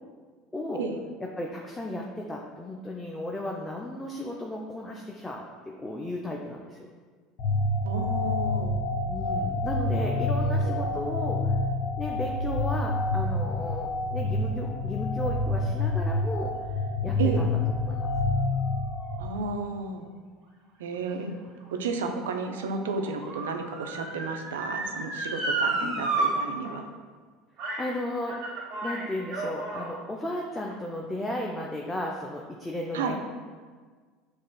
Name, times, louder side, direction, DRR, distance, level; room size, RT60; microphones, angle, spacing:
voice 1, 1.4-6.9 9.1-11.6 12.0-16.5 17.0-17.5 17.9-18.1 21.0-21.5 25.8-26.0 27.8-33.2, left 1 dB, 15° left, -1 dB, 0.4 m, -35 dB
sound 1, 7.4-19.3, left 2 dB, 60° left, 0.6 m, -27 dB
voice 2, 7.8-8.8 10.0-11.0 17.2-17.4 19.2-20.1 20.8-21.3 21.7-26.9 32.9-33.2, right 4 dB, 75° right, 4 dB, 0.3 m, -33 dB
Motor vehicle (road) / Siren, 21.1-26.3 26.6-26.7 27.6-27.9 28.3-29.9 30.6-30.7, right 3 dB, 55° right, 0.9 m, -32 dB
6.2 x 2.4 x 2.2 m, 1.5 s
hypercardioid pair, 75°, 0 cm